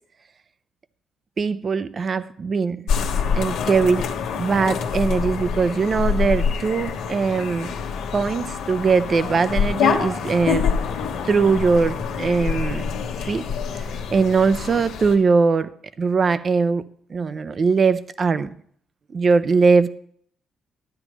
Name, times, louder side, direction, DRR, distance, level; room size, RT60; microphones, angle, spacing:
voice 1, 1.4-2.9 3.3-4.1 4.3-7.7 8.1-10.7 11.2-13.5 14.1-15.7 16.0-16.8 17.1-18.5 19.1-19.9, right 4 dB, 45° right, 13 dB, 0.5 m, -21 dB
sound 1, 2.9-15.1, left 6 dB, 85° left, 1.2 m, -26 dB
12.5 x 9.5 x 3.0 m, 0.63 s
cardioid pair, 90°, 0 cm